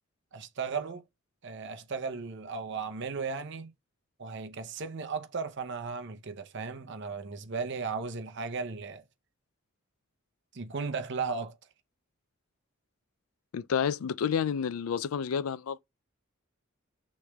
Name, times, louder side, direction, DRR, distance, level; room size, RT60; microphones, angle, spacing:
voice 1, 0.3-1.0 1.4-3.7 4.2-9.0 10.5-11.6, right 5 dB, 55° right, 0.7 m, -36 dB
voice 2, 13.5-15.8, left 7 dB, 80° left, 0.4 m, -30 dB
6.2 x 3.2 x 2.3 m
head